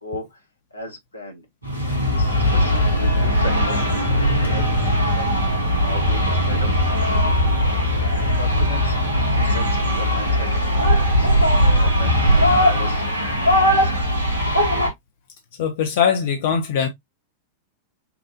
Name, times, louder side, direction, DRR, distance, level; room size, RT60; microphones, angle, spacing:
voice 1, 0.0-0.4 0.7-1.4 1.9-4.6 4.9-7.7 8.2-11.3 11.7-13.0 13.4-14.0, left 2 dB, 80° left, 1.2 m, -37 dB
sound 1, 1.6-14.9, equal, 85° right, 1.4 m, -19 dB
voice 2, 15.6-16.9, left 7 dB, 55° left, 0.8 m, -21 dB
5.9 x 2.6 x 2.3 m
figure-of-eight pair, 90°, 0 cm